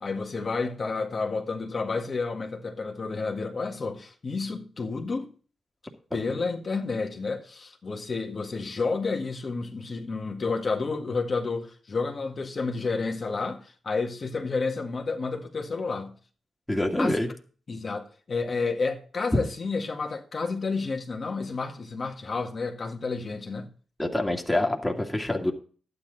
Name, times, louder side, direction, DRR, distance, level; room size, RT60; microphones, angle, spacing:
voice 1, 0.0-5.3 6.1-16.2 17.0-17.2 17.7-23.7, left 4 dB, 50° left, 1.8 m, -30 dB
voice 2, 16.7-17.3 24.0-25.5, left 1 dB, 5° left, 2.2 m, -26 dB
11.5 x 9.6 x 4.0 m
cardioid pair, 65°, 0 cm